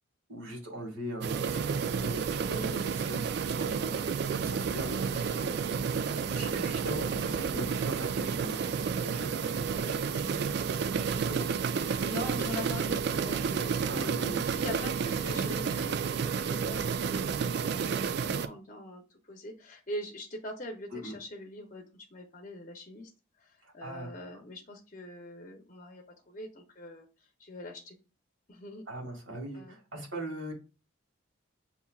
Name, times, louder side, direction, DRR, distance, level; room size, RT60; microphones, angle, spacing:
voice 1, 0.3-2.5 2.8-4.1 4.4-5.6 6.3-9.5 10.9-11.9 13.9-14.5 14.8-14.9 20.9-21.2 23.6-24.1 28.9-30.5, right 1 dB, 70° right, -1 dB, 2.0 m, -41 dB
sound 1, 1.2-18.5, right 6 dB, 55° right, 0.3 m, -31 dB
voice 2, 2.4-2.9 6.2-6.5 9.7-10.7 11.8-14.0 14.4-23.1 23.4-28.0 28.5-28.8 29.5-29.8, left 1 dB, 35° left, 2 dB, 0.7 m, -43 dB
7.0 x 2.8 x 2.3 m, 0.32 s
head